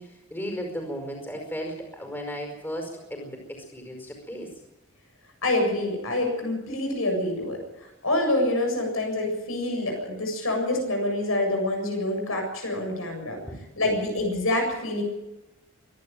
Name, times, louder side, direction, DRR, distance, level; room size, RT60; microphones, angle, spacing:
voice 1, 0.0-4.6 13.4-13.8, equal, 10° left, 2 dB, 5.1 m, -35 dB
voice 2, 5.4-7.6 8.0-13.4 13.8-15.0, left 1 dB, 80° left, 3 dB, 7.6 m, -26 dB
25.0 x 11.5 x 9.1 m, 0.96 s
head